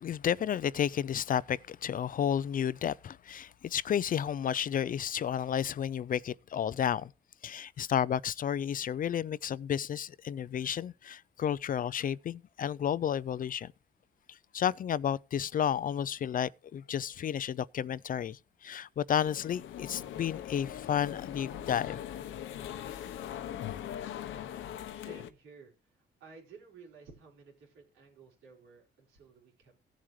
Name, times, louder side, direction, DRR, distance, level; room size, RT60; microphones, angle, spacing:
voice 1, 0.0-7.1 7.4-13.7 14.3-22.0, left 9 dB, 45° left, 0.4 m, -32 dB
sound 1, 19.3-25.3, left 10 dB, 80° left, 1.0 m, -41 dB
voice 2, 24.6-29.7, right 4 dB, 90° right, 4.2 m, -55 dB
17.0 x 7.6 x 3.2 m
cardioid pair, 90°, 20 cm